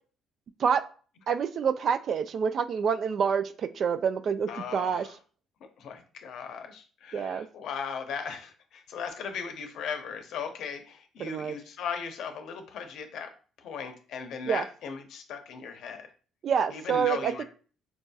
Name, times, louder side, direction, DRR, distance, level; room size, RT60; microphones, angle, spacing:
voice 1, 1.3-5.1 7.1-7.5 11.2-11.5 14.5-14.6 16.4-17.4, right 7 dB, 55° right, 11 dB, 0.3 m, -27 dB
voice 2, 4.5-5.1 5.8-16.1 16.7-17.4, left 6 dB, 70° left, 6 dB, 0.6 m, -38 dB
4.7 x 2.6 x 2.3 m, 0.40 s
cardioid pair, 90°, 0 cm